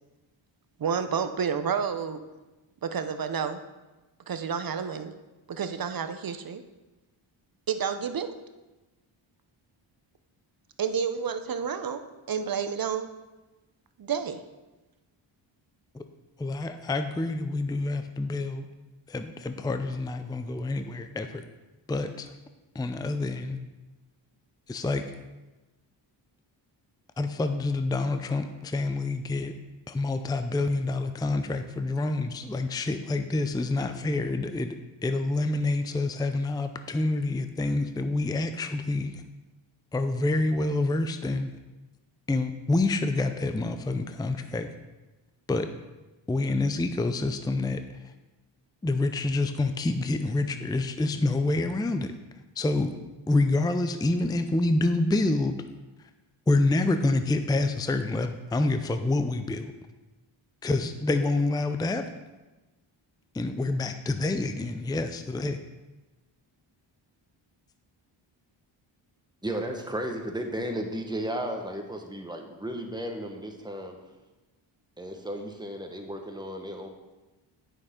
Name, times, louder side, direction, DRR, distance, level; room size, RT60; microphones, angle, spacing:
voice 1, 0.8-2.2 2.8-3.6 4.3-5.1 5.5-6.6 7.7-8.3 10.8-12.0 12.3-13.1 14.0-14.4, right 6 dB, 45° right, 9 dB, 0.7 m, -30 dB
voice 2, 16.4-18.7 19.1-21.4 21.9-22.3 22.7-23.6 24.7-25.1 27.2-29.6 29.9-34.8 35.0-39.2 39.9-41.5 42.3-44.7 45.5-45.7 46.3-47.8 48.8-52.1 52.6-52.9 53.3-55.5 56.5-59.7 60.6-62.1 63.3-65.6, left 2 dB, 10° left, 8 dB, 0.5 m, -27 dB
voice 3, 69.4-74.0 75.0-76.9, right 1 dB, 10° right, 3 dB, 1.3 m, -34 dB
9.1 x 6.5 x 3.7 m, 1.1 s
cardioid pair, 60°, 49 cm